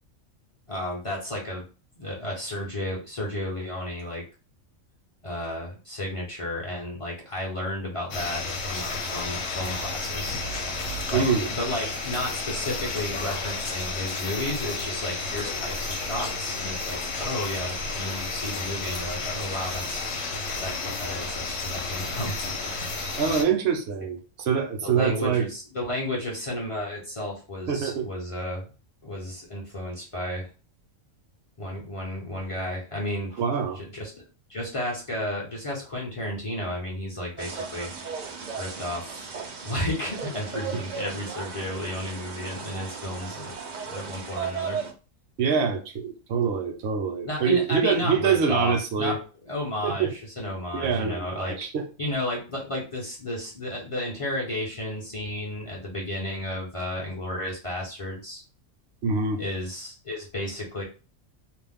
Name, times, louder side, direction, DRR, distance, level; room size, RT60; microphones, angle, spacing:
voice 1, 0.7-1.6 2.0-4.2 5.2-10.4 11.1-23.0 24.8-28.6 29.0-30.5 31.6-34.2 34.5-37.9 38.6-39.3 39.6-43.5 43.8-44.8 47.2-49.2 49.4-51.6 52.0-58.4 59.4-60.8, left 1 dB, 40° left, -3 dB, 0.5 m, -32 dB
sound 1, 8.1-23.4, left 3 dB, 65° left, 0.9 m, -32 dB
voice 2, 11.1-11.5 23.2-25.4 27.7-28.1 33.4-33.8 45.4-49.2 49.8-50.1 50.7-51.9 59.0-59.4, right 6 dB, 60° right, 4 dB, 0.8 m, -25 dB
sound 2, 37.4-44.9, right 6 dB, 85° right, 0.4 m, -36 dB
2.5 x 2.0 x 3.4 m, 0.35 s
omnidirectional pair, 1.4 m